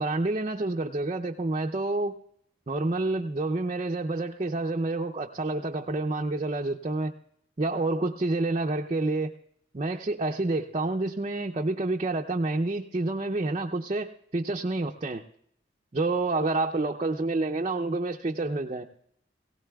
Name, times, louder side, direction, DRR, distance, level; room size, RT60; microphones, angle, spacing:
voice 1, 0.0-2.2 2.7-7.1 7.6-9.3 9.7-15.2 15.9-18.8, right 2 dB, 35° right, 2 dB, 0.5 m, -28 dB
18.5 x 17.5 x 2.3 m, 0.70 s
head